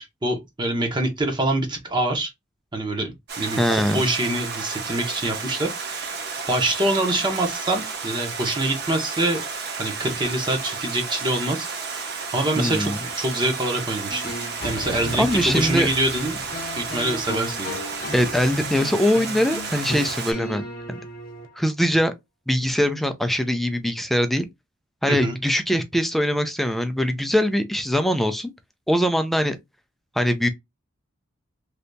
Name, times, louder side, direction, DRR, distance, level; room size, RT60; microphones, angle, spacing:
voice 1, 0.0-2.3 2.7-3.1 3.4-6.1 6.5-9.4 9.8-12.0 12.3-14.3 14.6-16.4 16.8-17.8 25.1-25.4, right 1 dB, 25° right, 0.8 m, -25 dB
Stream, 3.3-20.3, right 5 dB, 55° right, 1.0 m, -32 dB
voice 2, 3.6-4.1 12.6-13.0 15.2-15.9 18.1-20.6 20.9-21.0 21.6-22.1 22.5-24.5 25.0-28.5 28.9-29.6 30.2-30.5, equal, ahead, 0.4 m, -22 dB
sound 1, 14.1-21.5, left 1 dB, 45° left, 0.9 m, -35 dB
3.3 x 2.8 x 2.6 m
head